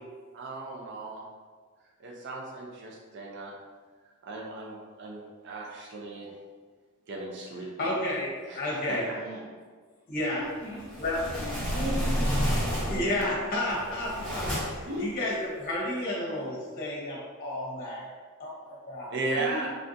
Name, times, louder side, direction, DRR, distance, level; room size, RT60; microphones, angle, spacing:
voice 1, 0.3-1.2 2.0-3.5 4.2-6.3 7.1-7.9 8.5-8.6 8.9-9.0 19.1-19.7, right 2 dB, 55° right, -2 dB, 0.5 m, -36 dB
voice 2, 7.8-9.1 10.1-10.4 11.0-11.2 12.9-14.5 14.7-18.1 18.4-19.1, left 1 dB, 45° left, -4 dB, 0.8 m, -31 dB
voice 3, 8.9-9.4 10.4-10.9 11.3-13.8 14.1-14.3 14.8-15.1 16.1-16.6 19.3-19.7, equal, 85° right, -5 dB, 0.8 m, -39 dB
sound 1, 10.7-13.2 13.7-14.9, equal, 5° left, 1.1 m, -30 dB
3.3 x 2.5 x 2.6 m, 1.5 s
head